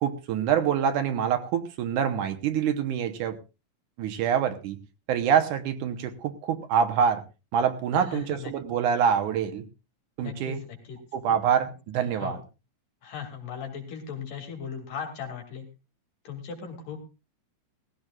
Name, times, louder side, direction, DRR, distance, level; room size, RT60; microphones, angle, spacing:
voice 1, 0.0-3.4 4.0-4.8 5.1-7.2 7.5-9.7 10.2-10.6 11.1-12.4, right 8 dB, 70° right, 8 dB, 2.4 m, -25 dB
voice 2, 8.1-8.5 10.2-11.0 12.2-12.4 13.0-15.7 16.3-17.0, left 7 dB, 75° left, 2 dB, 4.2 m, -37 dB
19.0 x 15.5 x 2.4 m, 0.29 s
omnidirectional pair, 3.8 m